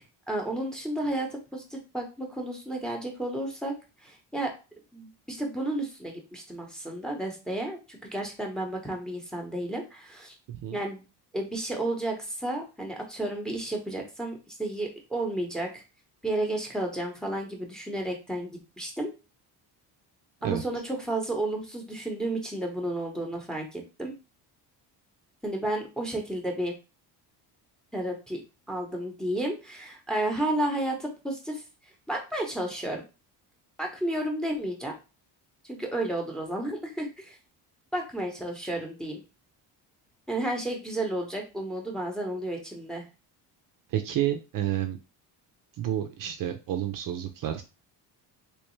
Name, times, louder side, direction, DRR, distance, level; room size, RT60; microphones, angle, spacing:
voice 1, 0.3-3.8 4.0-4.5 4.9-10.3 10.7-11.0 11.3-15.8 16.2-19.1 20.4-24.1 25.4-26.7 27.9-28.4 28.7-31.6 32.1-33.0 33.8-34.9 35.6-37.4 37.9-39.2 40.3-43.0, right 1 dB, ahead, 1 dB, 0.8 m, -32 dB
voice 2, 43.9-45.0 45.8-47.6, right 11 dB, 50° right, 6 dB, 0.5 m, -30 dB
3.3 x 3.1 x 3.1 m, 0.30 s
cardioid pair, 140°, 42 cm